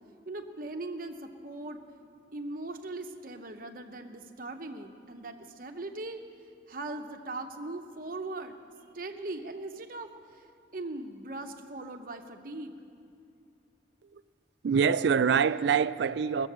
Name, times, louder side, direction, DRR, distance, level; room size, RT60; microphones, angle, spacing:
voice 1, 0.3-1.8 2.3-6.2 6.7-8.6 8.9-10.5 10.7-12.7, right 2 dB, 50° right, 0.8 m, -39 dB
voice 2, 14.6-16.5, right 6 dB, 65° right, 0.3 m, -25 dB
19.5 x 7.5 x 7.3 m
head